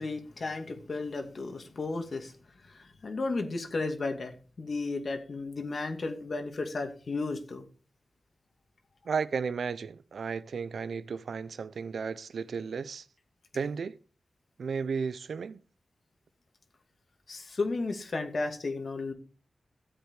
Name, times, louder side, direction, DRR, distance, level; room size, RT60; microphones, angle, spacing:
voice 1, 0.0-2.3 2.7-7.6 17.3-19.1, left 3 dB, 60° left, 2.4 m, -34 dB
voice 2, 9.0-13.1 13.5-14.0 14.6-15.6, right 5 dB, 85° right, 0.6 m, -34 dB
13.5 x 8.2 x 4.8 m
wide cardioid pair, 80°, 0 cm